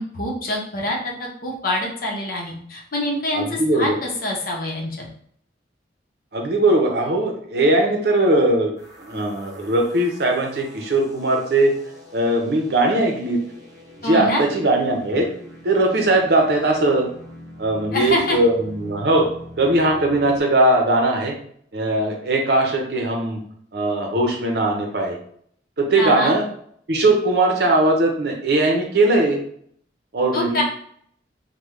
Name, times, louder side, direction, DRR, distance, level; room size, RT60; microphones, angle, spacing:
voice 1, 0.0-5.1 14.0-14.4 17.9-18.4 26.0-26.3 30.3-30.6, left 1 dB, 50° left, -1 dB, 0.8 m, -25 dB
voice 2, 3.3-4.0 6.3-8.7 9.0-11.7 12.1-13.4 14.0-15.3 15.6-17.1 17.6-19.3 19.6-21.4 21.7-23.4 23.7-25.2 25.8-26.4 26.9-29.4 30.1-30.6, right 2 dB, 65° right, 1 dB, 0.6 m, -19 dB
sound 1, 8.8-20.4, left 1 dB, 20° right, 0.7 m, -44 dB
3.5 x 2.2 x 3.1 m, 0.64 s
head